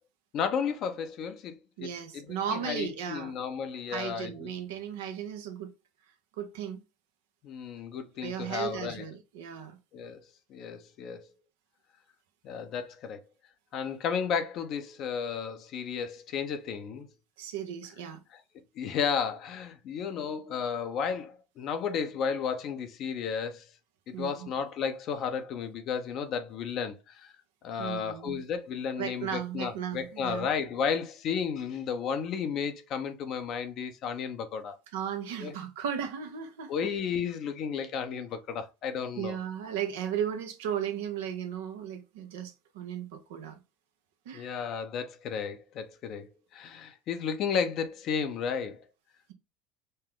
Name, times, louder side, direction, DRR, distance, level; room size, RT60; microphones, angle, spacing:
voice 1, 0.3-1.6 2.1-4.5 7.4-9.0 9.9-10.2 10.5-11.3 12.4-13.2 13.7-17.1 18.8-23.7 24.1-27.3 27.6-34.8 35.4-35.5 36.7-39.4 44.3-48.8, left 6 dB, 55° left, 0.9 m, -33 dB
voice 2, 1.8-3.3 3.9-5.7 6.4-6.8 8.2-9.8 17.4-18.2 24.1-24.5 27.8-28.4 29.0-30.5 34.9-36.7 39.2-43.6 44.2-44.5, right 8 dB, 80° right, 0.9 m, -35 dB
5.4 x 2.2 x 3.7 m
hypercardioid pair, 80°, 0 cm